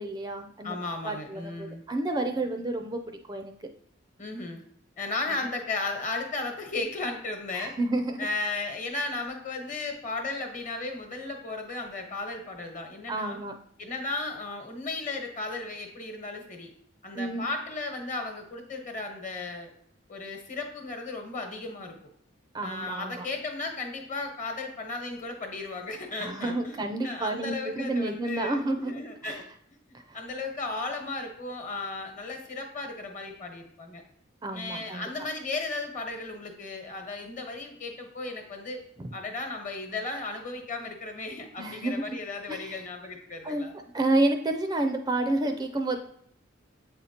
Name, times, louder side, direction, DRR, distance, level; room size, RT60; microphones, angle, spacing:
voice 1, 0.0-0.7 1.0-3.0 3.3-3.5 5.3-5.4 7.5-8.3 13.1-13.5 17.1-17.5 22.5-23.2 26.2-28.9 29.2-29.4 29.9-30.2 34.4-35.1 39.0-39.1 41.6-42.2 42.5-42.8 43.4-43.7 43.9-46.0, right 2 dB, 20° right, 5 dB, 0.4 m, -30 dB
voice 2, 0.6-1.8 4.2-4.6 5.0-7.8 8.2-13.4 13.8-16.7 17.0-19.7 20.1-22.0 22.6-29.4 30.1-34.0 34.5-38.8 39.1-43.7, left 3 dB, 40° left, 4 dB, 1.1 m, -35 dB
7.8 x 4.3 x 2.8 m, 0.67 s
head